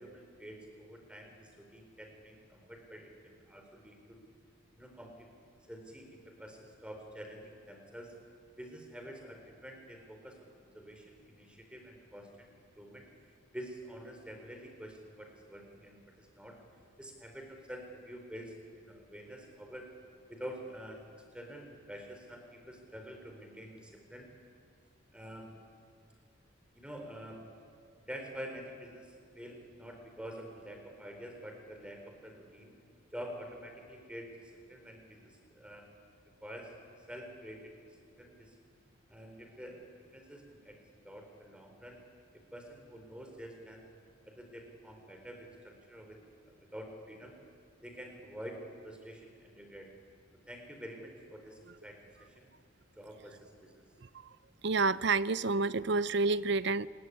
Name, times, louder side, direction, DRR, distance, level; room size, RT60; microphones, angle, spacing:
voice 1, 0.0-4.2 4.7-5.3 5.7-8.1 8.6-12.5 12.8-13.0 13.5-16.6 17.0-19.9 20.3-21.0 21.3-24.3 25.1-25.5 26.7-27.4 28.1-32.7 33.1-35.9 36.4-36.7 37.1-38.6 39.1-39.8 40.1-42.0 42.5-43.8 44.2-47.4 47.8-49.9 50.5-52.5 53.0-53.8, equal, 5° right, 3 dB, 4.0 m, -47 dB
voice 2, 54.0-54.4 54.6-56.9, right 3 dB, 55° right, 17 dB, 0.6 m, -29 dB
28.0 x 21.0 x 9.9 m, 2.2 s
head